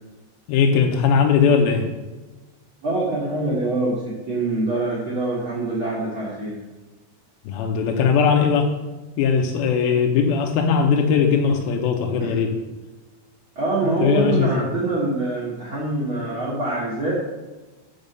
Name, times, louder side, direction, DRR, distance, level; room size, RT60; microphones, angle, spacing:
voice 1, 0.5-1.9 7.5-8.7 9.2-12.5 14.0-14.7, left 6 dB, 80° left, 2 dB, 2.2 m, -19 dB
voice 2, 2.8-6.6 12.2-12.4 13.5-17.2, right 2 dB, 80° right, -7 dB, 1.1 m, -25 dB
5.3 x 5.3 x 6.6 m, 1.2 s
omnidirectional pair, 5.0 m